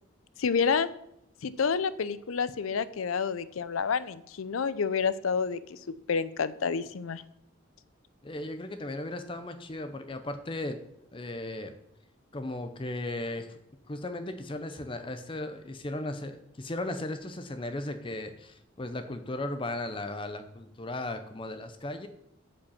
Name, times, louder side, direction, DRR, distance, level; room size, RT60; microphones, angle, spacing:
voice 1, 0.4-0.9 1.4-7.2, left 5 dB, 85° left, 15 dB, 0.5 m, -29 dB
voice 2, 8.2-10.8 11.1-11.7 12.3-13.6 13.9-22.1, left 2 dB, 25° left, 8 dB, 0.5 m, -36 dB
8.7 x 5.3 x 7.1 m, 0.77 s
head